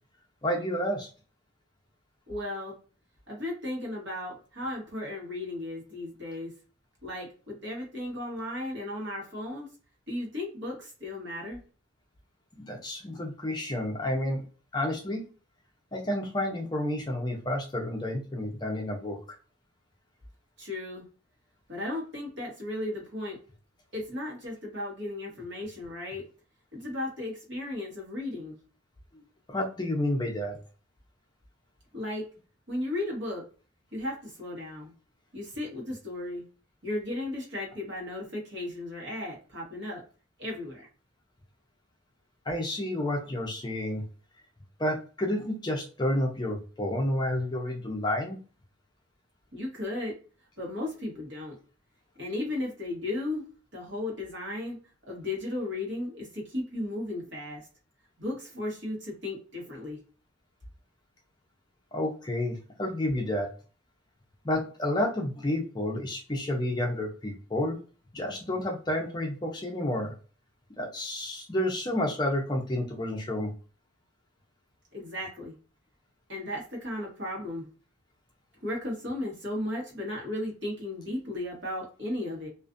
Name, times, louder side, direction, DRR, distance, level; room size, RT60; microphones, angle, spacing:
voice 1, 0.4-1.1 12.5-14.4 14.7-15.2 15.9-19.2 29.5-30.6 42.5-44.0 44.8-48.4 61.9-63.5 64.4-67.8 68.1-70.1 70.7-73.5, left 1 dB, 20° left, 1 dB, 0.4 m, -30 dB
voice 2, 2.3-2.8 3.3-6.5 7.0-9.7 10.1-11.6 20.6-21.0 21.7-23.4 23.9-26.2 26.7-28.6 31.9-32.2 32.7-33.4 33.9-34.9 35.3-36.4 36.8-40.0 40.4-40.9 49.5-50.1 50.6-51.6 52.2-53.4 53.7-54.8 55.1-57.6 58.2-60.0 74.9-75.5 76.3-77.7 78.6-82.5, left 1 dB, 65° right, -2 dB, 1.2 m, -35 dB
2.4 x 2.3 x 2.4 m, 0.37 s
head